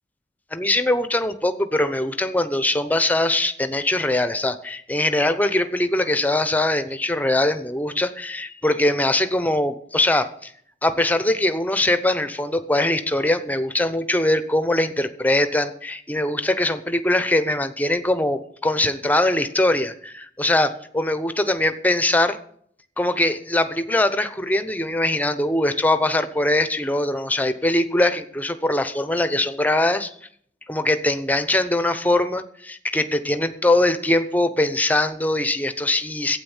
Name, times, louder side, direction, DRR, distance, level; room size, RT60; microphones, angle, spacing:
voice 1, 0.5-10.5 10.8-22.4 23.0-30.1 30.7-36.4, left 1 dB, 10° left, 11 dB, 0.8 m, -22 dB
12.5 x 8.9 x 7.3 m, 0.63 s
head